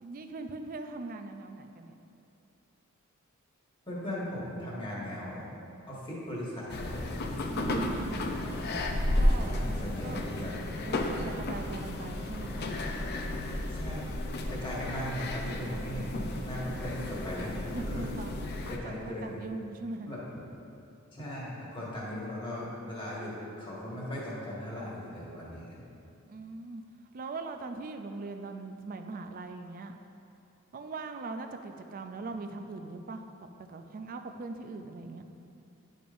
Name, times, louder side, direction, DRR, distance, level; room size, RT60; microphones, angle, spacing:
voice 1, 0.0-1.9 7.5-8.3 9.2-9.5 10.0-10.2 10.8-12.8 17.7-20.1 26.3-26.8 27.1-30.0 30.7-33.2 33.7-35.3, right 3 dB, 40° right, 6 dB, 0.4 m, -40 dB
voice 2, 3.9-5.6 5.9-7.2 9.4-10.5 13.7-14.2 14.5-18.2 18.7-19.5 20.0-20.2 21.1-23.3 23.6-25.8, left 1 dB, 25° left, -6 dB, 1.5 m, -38 dB
sound 1, 6.7-18.8, left 1 dB, 50° left, 0.5 m, -33 dB
10.5 x 5.1 x 2.6 m, 2.6 s
head